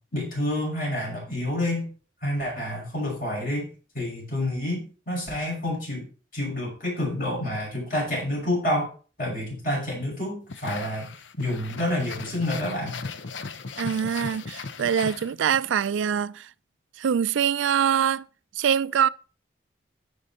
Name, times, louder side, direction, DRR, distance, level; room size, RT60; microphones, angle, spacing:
voice 1, 0.1-1.9 2.2-3.7 3.9-6.0 6.3-8.9 9.2-11.1 11.4-13.0, left 1 dB, 45° left, 5.9 m, -28 dB
sound 1, 10.5-15.7, left 4 dB, 80° left, 0.8 m, -37 dB
voice 2, 13.8-16.5 17.0-18.3 18.6-19.1, right 8 dB, 85° right, 0.4 m, -24 dB
15.5 x 5.3 x 4.3 m
head